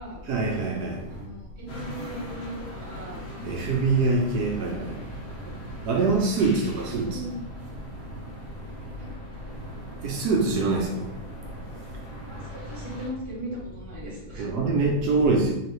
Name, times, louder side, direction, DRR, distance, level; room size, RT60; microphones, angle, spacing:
voice 1, 0.3-0.9 3.4-4.7 5.9-7.1 10.0-10.9 14.4-15.5, right 3 dB, 75° right, 1.2 m, -23 dB
voice 2, 1.1-3.2 6.4-7.4 9.0-9.1 12.3-14.7, right 1 dB, 35° right, 1.4 m, -39 dB
sound 1, 1.7-13.1, left 1 dB, 60° left, 1.2 m, -42 dB
3.8 x 2.8 x 3.1 m
omnidirectional pair, 1.8 m